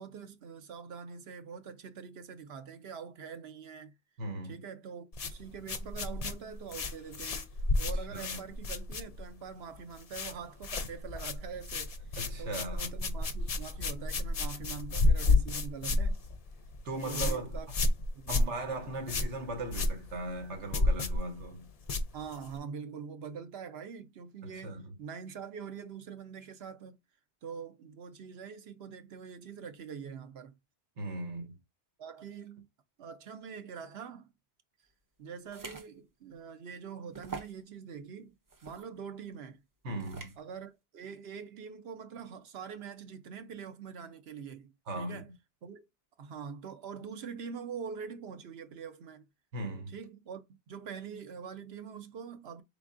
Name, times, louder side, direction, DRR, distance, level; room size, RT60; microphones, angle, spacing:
voice 1, 0.0-3.9 4.4-7.5 7.8-11.9 12.4-16.2 17.0-17.7 18.1-18.4 22.1-27.0 27.4-30.5 32.0-32.7 33.0-34.3 35.2-38.3 38.6-39.6 40.4-45.3 45.6-45.8 46.2-49.3 49.9-52.6, right 6 dB, 65° right, 0.9 m, -44 dB
voice 2, 4.2-4.6 8.1-8.4 12.2-12.9 16.8-17.6 18.3-21.7 24.4-24.9 31.0-31.6 39.8-40.4 44.9-45.2 49.5-49.9, right 2 dB, 80° right, 1.4 m, -38 dB
sound 1, 5.1-9.5 9.7-10.4 10.6-22.6, left 2 dB, 45° left, 0.5 m, -31 dB
sound 2, 35.5-35.9 36.4-36.5 37.1-37.6 38.5-38.8 40.0-40.4, right 4 dB, 30° right, 0.4 m, -44 dB
4.8 x 3.5 x 2.5 m
omnidirectional pair, 1.2 m